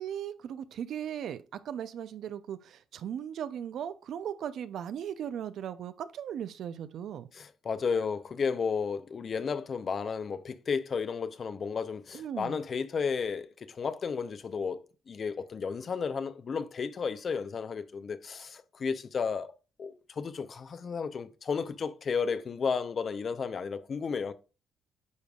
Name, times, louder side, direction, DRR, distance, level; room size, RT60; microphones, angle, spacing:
voice 1, 0.0-7.3 12.1-12.6, right 9 dB, 70° right, 0.6 m, -37 dB
voice 2, 7.3-14.8 15.1-19.5 19.8-24.3, left 5 dB, 45° left, 0.6 m, -33 dB
9.5 x 5.2 x 2.4 m
cardioid pair, 90°, 0 cm